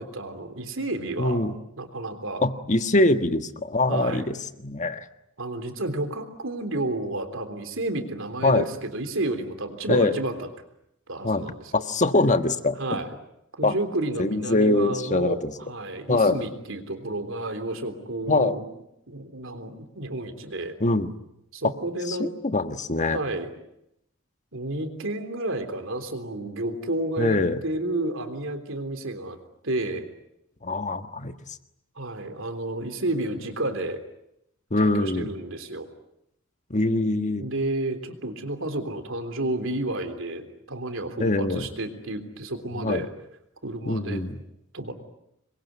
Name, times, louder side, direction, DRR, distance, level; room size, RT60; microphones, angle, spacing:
voice 1, 0.0-1.4 1.8-2.4 3.9-4.3 5.4-10.5 11.1-11.8 12.8-13.2 13.6-18.6 19.1-20.8 21.5-22.3 23.1-23.5 24.5-29.4 29.6-30.1 31.9-34.0 34.8-35.9 37.4-43.1 43.6-44.2 44.7-44.9, right 2 dB, 65° right, 7 dB, 3.5 m, -31 dB
voice 2, 1.2-1.5 2.4-4.4 4.6-5.1 8.4-8.7 9.9-10.1 11.2-11.5 11.7-13.0 13.6-13.7 14.2-15.5 16.1-16.4 18.3-18.6 20.8-21.1 22.1-23.2 27.2-27.6 30.6-31.6 34.7-35.3 36.7-37.4 41.2-41.6 42.8-43.1 43.8-44.4, left 2 dB, 35° left, 9 dB, 1.5 m, -23 dB
27.0 x 22.5 x 9.5 m, 0.82 s
head